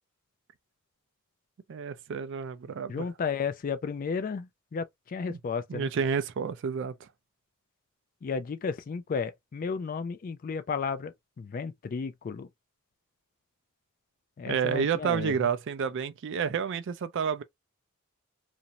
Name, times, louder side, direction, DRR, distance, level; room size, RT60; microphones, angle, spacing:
voice 1, 1.7-3.1 5.3-5.4 5.7-6.9 14.5-17.4, right 6 dB, 55° right, 0.4 m, -30 dB
voice 2, 2.9-5.9 8.2-12.5 14.4-15.5, left 5 dB, 40° left, 0.3 m, -33 dB
2.5 x 2.0 x 2.8 m
head